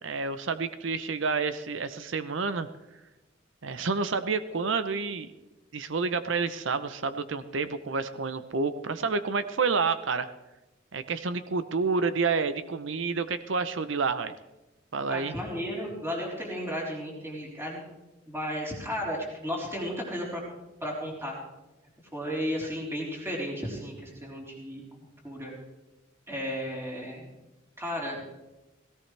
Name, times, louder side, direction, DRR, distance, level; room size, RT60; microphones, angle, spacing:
voice 1, 0.0-2.7 3.6-5.3 5.7-10.3 10.9-14.3 14.9-15.4, right 4 dB, 70° right, 12 dB, 0.7 m, -29 dB
voice 2, 15.1-17.8 18.3-20.4 20.8-21.4 22.1-24.8 25.2-25.5 26.3-27.3 27.8-28.2, equal, 15° right, -3 dB, 4.0 m, -34 dB
17.5 x 17.0 x 3.4 m, 1.0 s
head